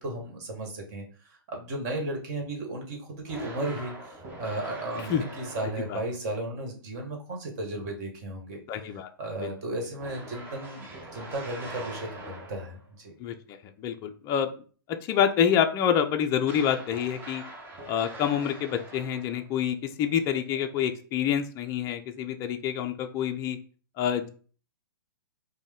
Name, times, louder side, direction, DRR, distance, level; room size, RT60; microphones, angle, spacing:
voice 1, 0.0-8.6 9.2-10.9 11.1-13.1, right 2 dB, 45° right, 2 dB, 1.5 m, -35 dB
sound 1, 3.3-6.2 10.0-12.9 16.4-19.5, right 1 dB, 15° right, 0.8 m, -43 dB
voice 2, 8.7-9.1 9.4-9.5 13.2-13.3 13.8-14.5 15.1-17.4 17.9-23.6 24.0-24.3, left 9 dB, 25° left, 6 dB, 0.4 m, -27 dB
4.9 x 2.1 x 3.6 m, 0.40 s
figure-of-eight pair, 110°, 12 cm